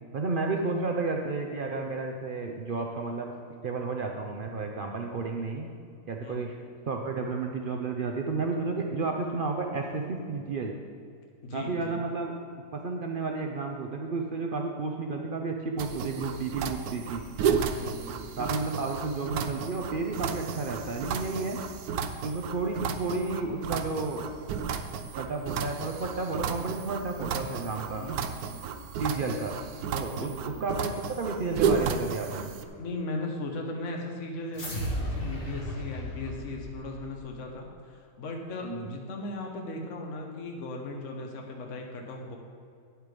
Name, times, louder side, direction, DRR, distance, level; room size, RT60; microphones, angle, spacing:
voice 1, 0.1-3.3 3.6-5.7 6.1-6.6 6.9-10.8 11.5-12.3 12.7-17.2 18.4-21.6 22.2-24.3 25.1-28.1 29.0-29.6 29.9-32.5 38.6-38.9, right 3 dB, 85° right, 2 dB, 0.4 m, -32 dB
voice 2, 11.4-12.0 17.7-18.4 27.9-28.6 30.1-30.6 32.7-42.4, left 2 dB, 50° left, 1 dB, 1.4 m, -38 dB
sound 1, 15.8-32.7, right 6 dB, 70° right, 1.0 m, -33 dB
sound 2, 34.5-37.3, equal, 35° left, 1.8 m, -34 dB
9.7 x 7.9 x 5.1 m, 2.3 s
omnidirectional pair, 1.9 m